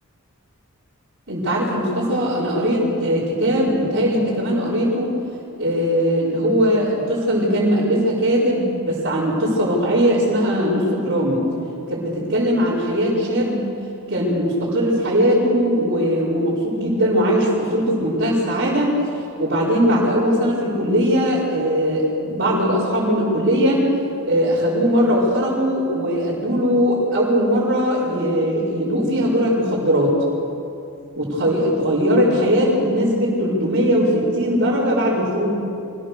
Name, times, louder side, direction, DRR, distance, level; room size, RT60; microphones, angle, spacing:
voice 1, 1.3-5.1 5.6-11.4 11.9-13.7 14.1-18.9 19.4-23.9 24.3-30.2 31.1-35.5, equal, 50° right, -11 dB, 5.1 m, -20 dB
25.0 x 18.5 x 6.8 m, 2.6 s
head